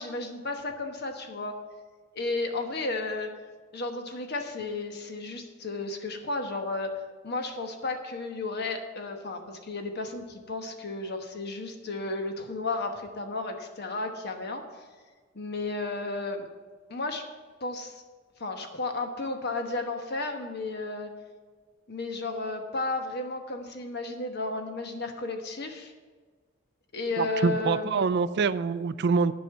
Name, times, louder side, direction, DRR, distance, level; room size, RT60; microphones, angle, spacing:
voice 1, 0.0-1.6 2.1-3.3 3.7-14.6 15.3-16.5 16.9-17.2 17.6-18.0 18.4-21.1 21.9-25.9 26.9-28.0, left 3 dB, 55° left, 5 dB, 1.2 m, -33 dB
voice 2, 27.2-29.3, right 5 dB, 60° right, 15 dB, 0.4 m, -25 dB
10.5 x 5.4 x 8.0 m, 1.4 s
head